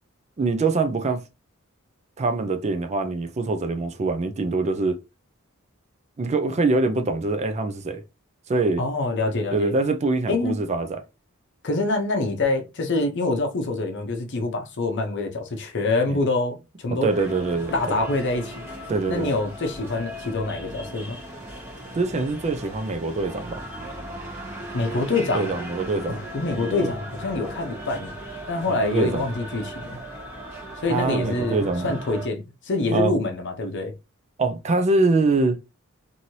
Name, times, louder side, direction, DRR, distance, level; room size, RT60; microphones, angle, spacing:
voice 1, 0.4-1.2 2.2-5.0 6.2-8.0 8.5-8.8 9.5-11.0 16.1-16.2 16.9-18.0 18.9-19.3 22.0-23.6 25.3-26.2 26.6-26.9 28.7-29.2 30.9-32.0 32.9-33.1 34.4-35.7, right 3 dB, 30° right, 0.4 m, -24 dB
voice 2, 8.8-9.7 10.3-10.6 11.6-17.1 17.7-18.7 19.1-21.2 24.7-25.5 26.1-28.1 28.5-30.0 30.8-33.9, left 2 dB, 55° left, 0.7 m, -26 dB
sound 1, 17.1-32.3, right 1 dB, 10° right, 1.0 m, -37 dB
3.0 x 2.7 x 2.7 m
head